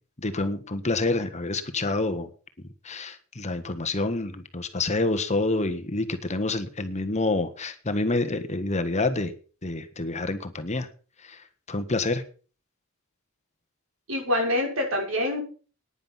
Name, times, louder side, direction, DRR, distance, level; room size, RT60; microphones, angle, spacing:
voice 1, 0.2-2.3 2.8-9.3 9.6-10.9 11.2-12.2, left 2 dB, 35° left, 9 dB, 1.5 m, -28 dB
voice 2, 14.1-15.4, left 1 dB, 70° right, 2 dB, 6.3 m, -25 dB
10.0 x 10.0 x 7.3 m, 0.39 s
head